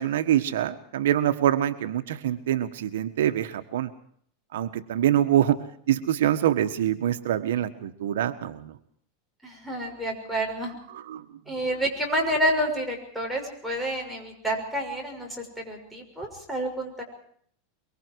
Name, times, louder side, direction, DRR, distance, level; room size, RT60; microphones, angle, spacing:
voice 1, 0.0-3.9 4.5-5.6 5.9-8.7 11.1-11.2, right 11 dB, 85° right, 8 dB, 1.5 m, -25 dB
voice 2, 9.4-10.7 11.5-17.0, right 1 dB, ahead, -1 dB, 6.2 m, -29 dB
24.0 x 23.5 x 4.8 m, 0.62 s
supercardioid pair, 145°, 0 cm